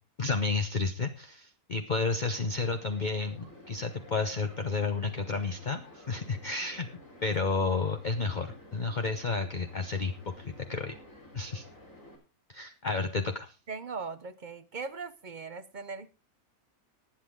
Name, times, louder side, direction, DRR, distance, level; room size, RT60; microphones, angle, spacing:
voice 1, 0.2-6.9 7.2-11.0 11.3-11.6 12.5-13.5, left 4 dB, 35° left, 7 dB, 0.9 m, -31 dB
sound 1, 2.2-12.2, left 1 dB, 55° left, 5.1 m, -52 dB
voice 2, 13.7-16.1, right 4 dB, 45° right, 13 dB, 0.6 m, -39 dB
20.0 x 8.3 x 3.7 m, 0.31 s
omnidirectional pair, 1.6 m